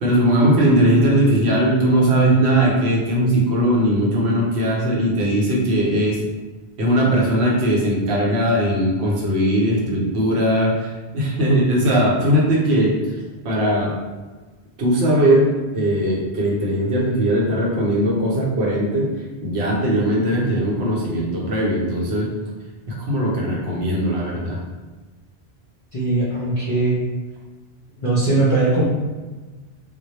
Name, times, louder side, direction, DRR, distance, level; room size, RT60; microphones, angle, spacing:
voice 1, 0.0-6.2 6.8-10.9 11.1-13.0 13.4-13.9 14.8-19.1 19.4-22.3 22.9-24.6, right 1 dB, 75° right, -3 dB, 0.9 m, -19 dB
voice 2, 25.9-27.0 28.0-28.9, right 2 dB, 45° left, -9 dB, 0.4 m, -20 dB
2.1 x 2.0 x 2.8 m, 1.3 s
omnidirectional pair, 1.1 m